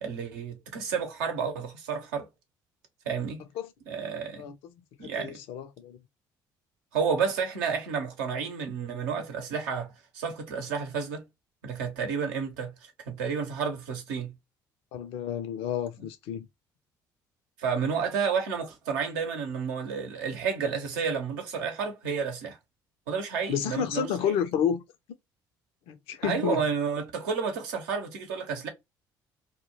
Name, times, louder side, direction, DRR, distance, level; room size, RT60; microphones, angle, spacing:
voice 1, 0.0-2.3 3.0-3.4 3.9-4.5 5.0-5.4 6.9-11.2 11.6-14.3 17.6-22.6 23.1-24.1 26.2-28.7, right 6 dB, 75° right, 0.8 m, -31 dB
voice 2, 5.0-6.0 14.9-16.5 23.5-24.8 25.9-26.6, left 8 dB, 65° left, 0.5 m, -30 dB
2.2 x 2.1 x 3.0 m
hypercardioid pair, 55°, 10 cm